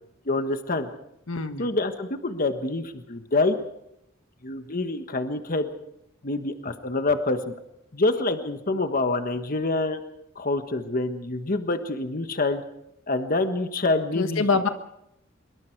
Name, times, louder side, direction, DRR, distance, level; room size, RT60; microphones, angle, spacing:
voice 1, 0.2-0.9 1.6-3.6 4.4-5.7 6.2-7.5 7.9-10.0 10.3-12.6 13.1-14.5, left 2 dB, 45° left, 8 dB, 1.4 m, -26 dB
voice 2, 1.3-1.7 14.1-14.7, left 4 dB, 85° left, 8 dB, 1.6 m, -25 dB
24.5 x 23.0 x 4.7 m, 0.79 s
head